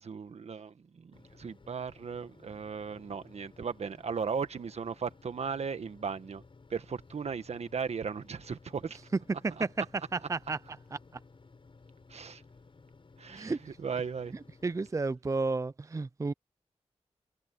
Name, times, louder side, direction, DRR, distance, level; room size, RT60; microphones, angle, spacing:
voice 1, 0.0-6.4 6.7-9.0 9.6-9.7 12.1-12.4 13.2-13.5 13.8-14.4, right 6 dB, 70° right, 1.4 m, -36 dB
sound 1, 1.1-14.9, left 4 dB, 50° left, 7.5 m, -57 dB
voice 2, 10.1-10.6 10.9-11.0 13.4-13.6 14.6-16.3, right 3 dB, 30° right, 0.5 m, -32 dB
wide cardioid pair, 75°, 11 cm